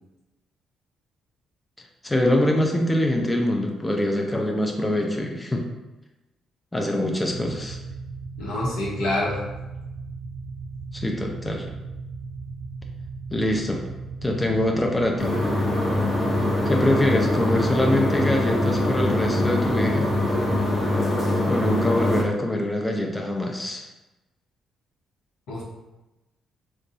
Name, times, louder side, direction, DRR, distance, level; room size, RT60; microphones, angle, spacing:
voice 1, 2.0-5.6 6.7-7.8 10.9-11.7 13.3-13.8 14.2-15.4 16.6-20.1 21.5-23.9, left 1 dB, 15° left, 1 dB, 0.4 m, -24 dB
sound 1, 7.3-20.6, right 3 dB, 35° right, 0.7 m, -36 dB
voice 2, 8.4-9.4 25.5-25.6, left 1 dB, 85° left, -4 dB, 1.0 m, -26 dB
sound 2, 15.2-22.2, left 1 dB, 35° left, 0.8 m, -23 dB
3.8 x 2.3 x 2.7 m, 1.0 s
cardioid pair, 90°, 0 cm